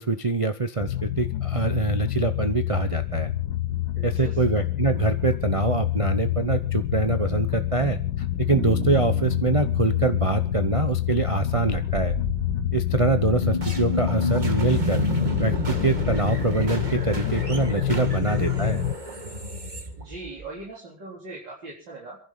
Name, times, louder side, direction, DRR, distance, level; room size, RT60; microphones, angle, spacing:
voice 1, 0.0-3.3 4.0-12.2 12.7-15.1 15.4-18.9, right 4 dB, 60° right, 8 dB, 0.3 m, -25 dB
sound 1, 0.8-18.9, left 13 dB, 75° left, 1.7 m, -27 dB
voice 2, 3.9-4.3 18.0-18.3 20.0-22.2, right 2 dB, 75° right, -5 dB, 4.7 m, -40 dB
Bass guitar, 8.5-12.6, right 7 dB, 40° right, 1.5 m, -36 dB
sound 2, 11.9-20.6, right 2 dB, 25° right, 1.8 m, -32 dB
27.5 x 11.5 x 4.0 m, 0.40 s
omnidirectional pair, 2.0 m